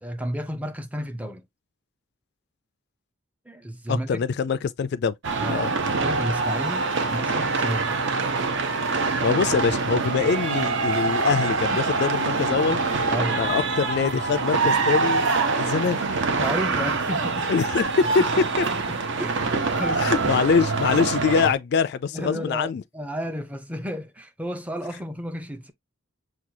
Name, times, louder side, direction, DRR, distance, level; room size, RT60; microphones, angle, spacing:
voice 1, 0.0-1.5 3.5-4.2 5.4-8.0 13.1-13.5 16.3-17.5 18.2-18.3 18.9-20.1 22.1-25.7, equal, 5° right, 0.5 m, -32 dB
voice 2, 3.9-5.1 5.5-5.7 9.2-12.8 13.4-15.3 15.6-16.0 17.5-17.8 18.1-18.2 18.6-18.7 20.0-22.8, left 6 dB, 50° left, 0.3 m, -24 dB
sound 1, 5.2-21.5, right 4 dB, 60° right, 0.7 m, -25 dB
6.0 x 2.3 x 2.7 m
head